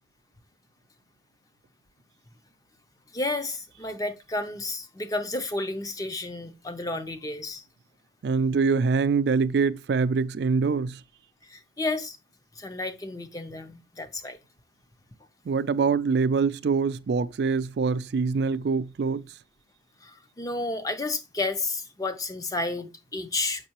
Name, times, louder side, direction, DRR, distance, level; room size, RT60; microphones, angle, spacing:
voice 1, 3.1-7.6 11.4-12.2 12.5-14.4 20.0-23.7, left 2 dB, 20° left, 0.5 m, -31 dB
voice 2, 8.2-11.0 15.5-19.2, right 5 dB, 65° right, 0.3 m, -24 dB
6.6 x 5.4 x 2.9 m
head